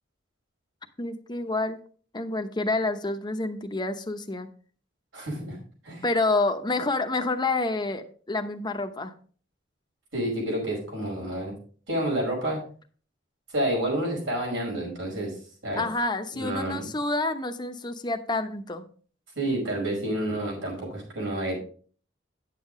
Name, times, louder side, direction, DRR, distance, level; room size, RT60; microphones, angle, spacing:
voice 1, 1.0-1.8 2.1-4.5 6.0-9.1 15.8-18.8, left 2 dB, 25° left, 7 dB, 0.8 m, -28 dB
voice 2, 5.1-5.6 5.8-6.1 10.1-11.5 11.9-12.6 13.5-15.4 15.6-15.8 16.3-16.9 19.4-21.6, right 1 dB, 75° right, -1 dB, 5.3 m, -29 dB
10.0 x 7.4 x 3.8 m, 0.43 s
head